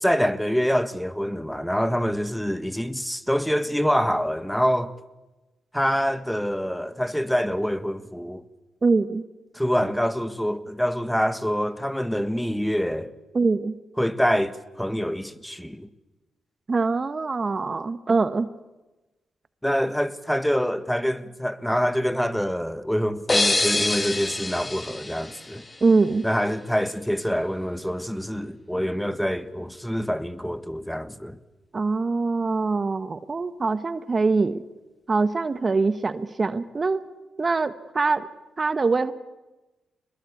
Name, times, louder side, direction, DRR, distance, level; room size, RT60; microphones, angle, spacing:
voice 1, 0.0-4.9 5.7-8.4 9.5-13.1 14.0-15.9 19.6-25.6 26.2-31.4, equal, 5° left, 1.5 m, -25 dB
voice 2, 8.8-9.2 13.3-13.7 16.7-18.5 25.8-26.3 31.7-34.6 35.1-37.0 37.4-38.3 38.6-39.1, right 4 dB, 40° right, 1.1 m, -23 dB
sound 1, 23.3-26.1, left 2 dB, 25° left, 2.4 m, -26 dB
25.0 x 21.0 x 8.3 m
supercardioid pair, 50°, 0 cm